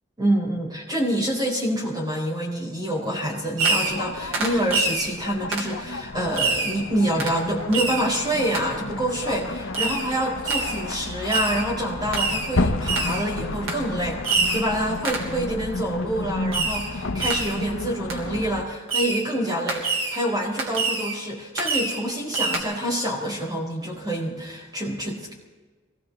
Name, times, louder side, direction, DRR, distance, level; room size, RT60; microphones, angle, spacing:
voice 1, 0.2-25.3, right 1 dB, 20° right, -3 dB, 4.4 m, -27 dB
Fireworks, 3.6-4.1 4.3-5.1 5.5-5.7 6.4-6.8 7.2-7.4 7.7-8.1 8.5-8.7 9.7-10.1 10.5-10.8 11.3-11.7 12.1-12.5 12.9-13.2 13.7-13.8 14.2-14.7 15.0-15.3 16.5-16.9 17.2-17.6 18.1-18.2 18.9-19.3 19.7-20.2 20.6-21.2 21.6-22.0 22.3-22.6, right 3 dB, 80° right, 2.8 m, -25 dB
sound 1, 3.8-18.6, left 2 dB, 75° left, 1.0 m, -32 dB
24.0 x 18.0 x 3.2 m, 1.3 s
head